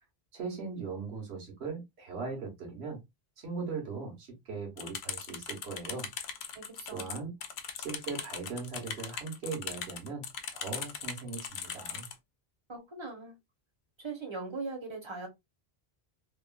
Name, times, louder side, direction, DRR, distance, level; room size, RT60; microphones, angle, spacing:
voice 1, 0.3-3.0 3.4-6.1 6.9-7.3 7.8-10.3 10.5-12.1, right 4 dB, 85° right, 1.3 m, -39 dB
sound 1, 4.8-12.1, left 7 dB, 80° left, 0.8 m, -39 dB
voice 2, 6.5-7.1 12.7-13.4 14.0-15.3, right 3 dB, 30° right, 0.9 m, -40 dB
3.0 x 2.3 x 2.3 m
omnidirectional pair, 1.1 m